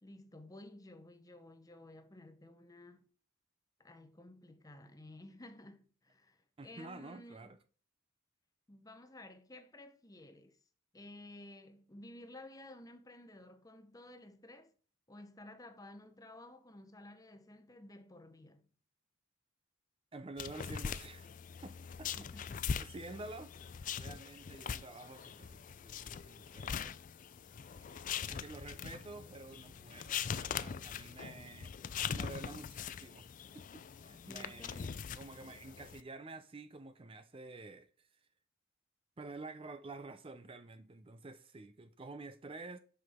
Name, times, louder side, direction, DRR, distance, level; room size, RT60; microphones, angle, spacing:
voice 1, 0.0-3.1 3.8-7.5 8.7-10.6 10.9-14.7 15.1-18.7 22.1-22.8 34.2-34.9, left 1 dB, 15° left, 0.7 m, -54 dB
voice 2, 6.6-7.6 20.1-21.3 21.6-22.1 22.5-23.5 23.9-27.0 27.8-31.7 32.1-33.3 33.5-38.1 39.2-42.8, right 3 dB, 25° right, 0.5 m, -50 dB
sound 1, 20.4-36.0, left 7 dB, 40° left, 0.4 m, -42 dB
8.1 x 5.9 x 3.5 m
head